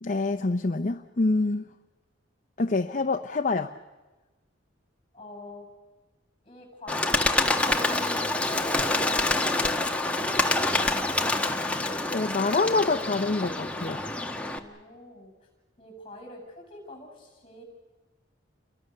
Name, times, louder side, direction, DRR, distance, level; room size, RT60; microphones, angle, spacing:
voice 1, 0.0-1.6 2.6-3.7 12.1-14.0, left 3 dB, 40° left, 7 dB, 0.7 m, -26 dB
voice 2, 5.1-5.7 6.4-8.0 8.4-10.6 14.4-15.3 15.8-17.6, left 1 dB, 25° left, 3 dB, 7.6 m, -45 dB
Bird, 6.9-14.6, left 2 dB, 5° left, 1.2 m, -26 dB
29.5 x 23.0 x 6.7 m, 1.2 s
head